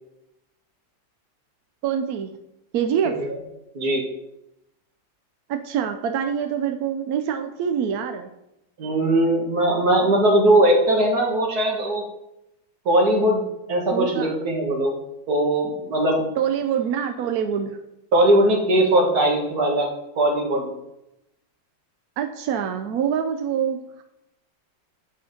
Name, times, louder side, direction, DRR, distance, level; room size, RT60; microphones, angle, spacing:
voice 1, 1.8-2.3 2.7-3.1 5.5-8.3 13.9-14.3 16.4-17.8 22.2-23.8, right 8 dB, 70° right, 6 dB, 0.9 m, -25 dB
voice 2, 8.8-12.0 12.9-13.4 13.7-14.9 15.3-16.2 18.1-19.9 20.2-20.7, right 1 dB, 55° right, 1 dB, 2.1 m, -19 dB
8.2 x 5.1 x 5.2 m, 0.86 s
omnidirectional pair, 2.1 m